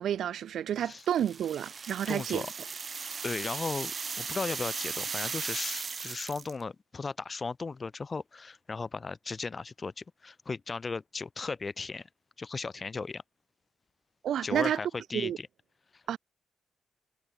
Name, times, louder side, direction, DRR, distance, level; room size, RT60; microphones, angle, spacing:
voice 1, 0.0-2.4 14.2-14.8 15.1-15.4 16.1-16.2, right 10 dB, 60° right, 1.7 m, -30 dB
sound 1, 1.0-6.6, right 5 dB, 30° right, 3.5 m, -37 dB
voice 2, 2.1-2.5 3.2-3.9 4.2-12.1 12.4-13.2 14.4-15.5 15.9-16.0, left 4 dB, 25° left, 1.2 m, -36 dB
wide cardioid pair, 170°, 0 cm